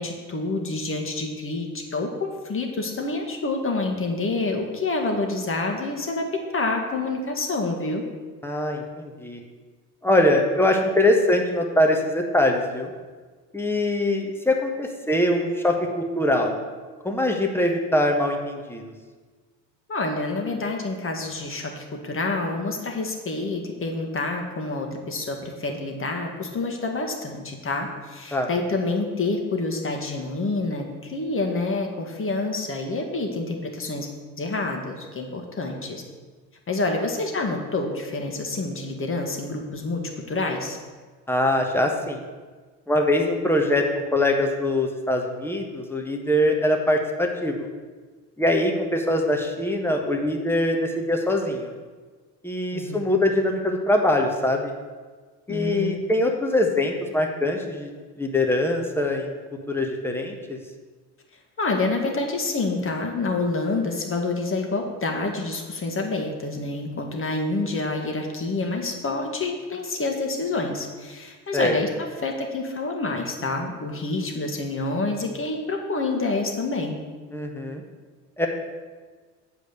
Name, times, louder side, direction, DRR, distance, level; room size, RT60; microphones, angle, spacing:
voice 1, 0.0-8.0 19.9-34.1 34.4-36.0 36.7-40.8 52.7-53.0 55.5-56.0 61.6-77.0, left 3 dB, 25° left, 2 dB, 1.7 m, -28 dB
voice 2, 8.4-9.4 10.0-12.9 13.5-16.5 17.0-18.8 28.3-28.5 41.3-42.2 42.9-47.7 48.4-51.7 52.4-54.7 55.5-57.9 58.2-59.4 59.7-60.6 71.5-71.8 77.3-77.8 78.4-78.5, left 1 dB, 5° left, 2 dB, 1.3 m, -23 dB
8.3 x 5.0 x 7.0 m, 1.4 s
hypercardioid pair, 65°, 49 cm